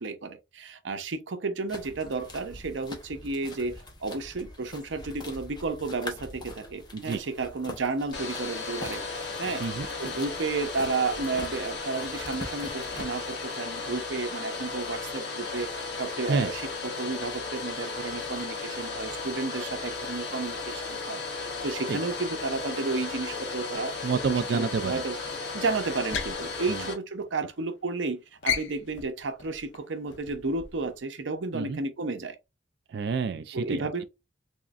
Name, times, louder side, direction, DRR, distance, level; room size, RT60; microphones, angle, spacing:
voice 1, 0.0-9.6 10.0-23.9 24.5-25.2 25.5-32.4 33.5-34.1, right 3 dB, 80° right, 0.7 m, -32 dB
sound 1, 1.7-13.0, left 2 dB, 25° left, 0.8 m, -44 dB
Domestic sounds home sounds, 8.1-26.9, left 4 dB, 60° left, 1.3 m, -35 dB
voice 2, 24.0-25.0 26.7-26.9 31.5-31.8 32.9-34.0, right 5 dB, 60° right, 0.3 m, -29 dB
sound 2, 25.9-27.6 27.8-28.1 28.4-31.0, left 7 dB, 85° left, 0.6 m, -35 dB
3.6 x 3.1 x 2.4 m
head